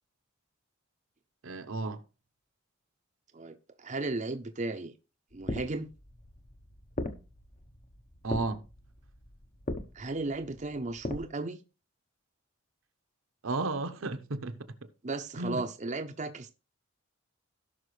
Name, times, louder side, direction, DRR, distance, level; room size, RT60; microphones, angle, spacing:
voice 1, 1.4-2.0 8.2-8.6 13.4-14.6 15.4-15.6, right 3 dB, 75° right, 0.9 m, -33 dB
voice 2, 3.3-4.9 5.3-5.9 9.9-11.6 15.0-16.5, right 2 dB, 35° right, 0.6 m, -35 dB
sound 1, 5.3-11.2, left 1 dB, 35° left, 0.8 m, -40 dB
17.0 x 5.8 x 3.2 m
head